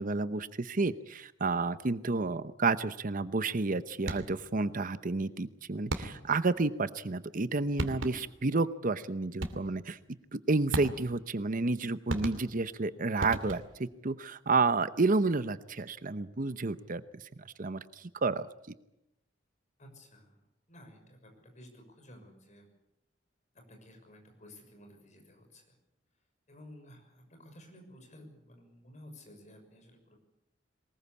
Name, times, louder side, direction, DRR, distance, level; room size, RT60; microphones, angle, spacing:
voice 1, 0.0-10.0 10.3-17.2 17.6-18.5, right 3 dB, 45° right, 13 dB, 0.8 m, -30 dB
sound 1, 4.0-4.5 5.9-6.4 7.4-7.5 7.8-8.4 9.4-9.9 10.7-11.3 12.1-12.8 13.2-13.9, right 1 dB, 80° right, 2.5 m, -37 dB
voice 2, 19.8-20.4 20.7-22.7 23.5-25.8 26.5-30.2, left 1 dB, 40° left, 4 dB, 6.5 m, -54 dB
23.0 x 20.5 x 8.5 m, 0.84 s
head